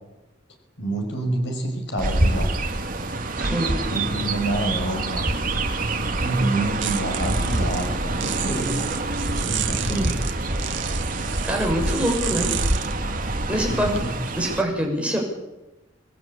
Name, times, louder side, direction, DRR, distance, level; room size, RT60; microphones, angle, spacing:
voice 1, 0.8-2.5 3.9-5.3 6.2-8.9 9.4-10.1 13.5-14.2, right 2 dB, 65° left, 3 dB, 5.9 m, -27 dB
Chirp tweet, 2.0-14.6, right 2 dB, 45° right, 2.5 m, -26 dB
voice 2, 3.4-3.8 9.9-10.2 11.4-12.5 13.5-13.9 14.4-15.2, equal, 5° right, 0 dB, 6.3 m, -25 dB
sound 1, 5.5-14.0, right 5 dB, 70° right, 1.8 m, -31 dB
28.0 x 20.5 x 8.6 m, 1.0 s
head